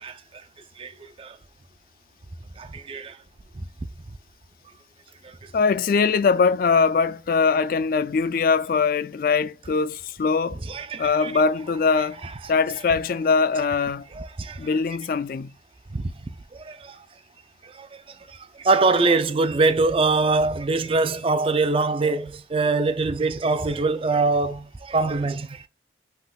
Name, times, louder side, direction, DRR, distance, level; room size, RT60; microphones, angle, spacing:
voice 1, 0.8-1.4 2.6-3.2 3.5-3.7 5.2-5.4 10.7-11.3 14.1-14.7 15.9-16.1 16.5-17.1 17.6-18.0 18.3-25.7, right 3 dB, 30° right, 0.4 m, -24 dB
voice 2, 5.5-10.6 11.0-12.2 12.5-14.1 14.6-15.5, left 5 dB, 50° left, 0.3 m, -22 dB
5.7 x 3.8 x 2.4 m
head